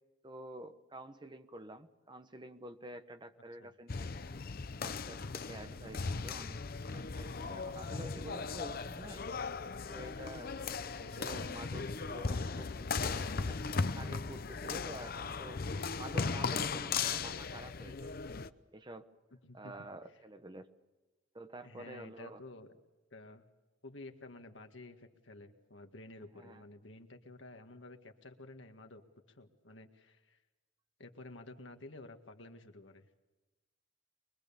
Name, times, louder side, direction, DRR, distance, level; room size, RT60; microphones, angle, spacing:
voice 1, 0.2-4.4 4.8-6.6 6.9-9.3 9.8-10.5 10.9-13.6 14.0-15.6 16.0-18.1 18.7-19.1 19.5-20.7 21.3-22.4 26.4-26.6, right 1 dB, 25° right, 8 dB, 1.2 m, -49 dB
sound 1, 3.9-18.5, left 4 dB, 50° left, 0.7 m, -37 dB
voice 2, 19.4-19.9 21.6-22.7 23.1-23.5 23.8-29.0 29.3-30.4 31.0-33.1, left 2 dB, 80° left, 5 dB, 1.9 m, -52 dB
24.5 x 22.0 x 7.1 m, 1.1 s
head